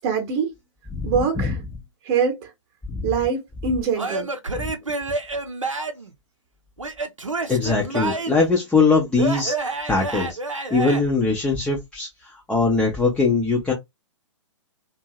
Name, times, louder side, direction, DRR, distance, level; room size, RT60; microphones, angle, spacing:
voice 1, 0.0-0.5 1.0-1.6 2.0-2.5 3.0-4.3, right 6 dB, 30° right, 0.8 m, -23 dB
voice 2, 0.9-1.5 2.9-3.0 4.6-4.7 7.5-10.4 10.7-12.1 12.5-13.7, left 4 dB, 5° left, 0.4 m, -21 dB
Male speech man speaking / Yell / Laughter, 4.0-6.1 6.8-8.5 9.2-11.0, right 3 dB, 85° right, 0.6 m, -28 dB
2.6 x 2.4 x 2.8 m
figure-of-eight pair, 120°, 16 cm